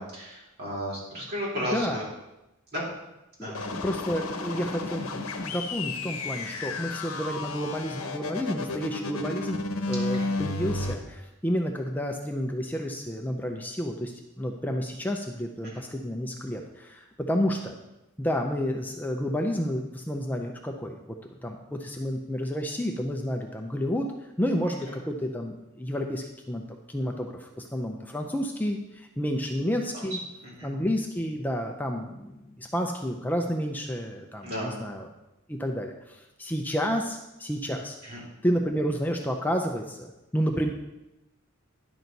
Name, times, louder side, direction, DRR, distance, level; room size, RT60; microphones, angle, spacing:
voice 1, 0.0-2.0 2.7-2.8 3.4-3.7 6.7-6.8 10.2-10.3 15.6-15.8 24.9-25.0 29.9-30.0 30.6-30.7 34.4-34.9 38.0-38.2, equal, 50° right, -5 dB, 3.5 m, -34 dB
sound 1, 3.5-10.9, left 3 dB, 75° left, 0.9 m, -32 dB
voice 2, 3.8-9.6 9.8-17.8 18.2-21.0 21.4-24.1 24.4-26.6 26.9-30.2 30.6-35.1 35.5-38.0 38.4-40.7, equal, 10° left, 2 dB, 0.5 m, -30 dB
10.5 x 6.1 x 4.0 m, 0.95 s
head